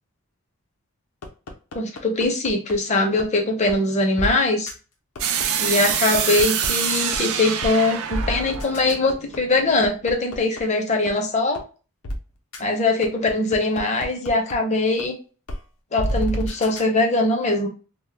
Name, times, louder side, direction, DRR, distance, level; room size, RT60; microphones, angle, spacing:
sound 1, 1.2-2.7 3.2-3.3 3.7-3.8 4.2-4.3 4.7-4.8 5.1-6.7 7.1-7.2 7.6-7.7 8.1-10.6 11.1-11.2 11.5-11.6 12.0-12.2 12.5-12.6 13.0-14.5 15.0-15.1 15.5-15.6 16.0-16.8, equal, 75° left, 0.6 m, -29 dB
voice 1, 1.7-4.7 5.6-11.6 12.6-15.2 15.9-17.7, left 2 dB, 30° left, 3 dB, 0.5 m, -22 dB
sound 2, 5.2-10.0, right 8 dB, 70° right, 0.4 m, -26 dB
2.2 x 2.0 x 3.2 m, 0.36 s
head